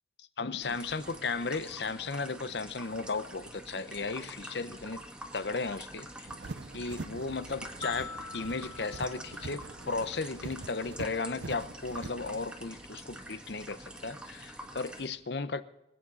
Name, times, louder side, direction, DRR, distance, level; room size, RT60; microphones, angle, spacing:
voice 1, 0.4-5.0 5.3-6.1 6.7-15.6, left 4 dB, 70° left, 14 dB, 0.8 m, -35 dB
sound 1, 0.6-15.1, right 1 dB, 5° right, 1.4 m, -47 dB
sound 2, 6.3-12.4, right 3 dB, 85° right, 0.6 m, -45 dB
sound 3, 7.8-10.2, left 5 dB, 20° left, 0.6 m, -45 dB
25.0 x 8.8 x 4.1 m, 0.94 s
head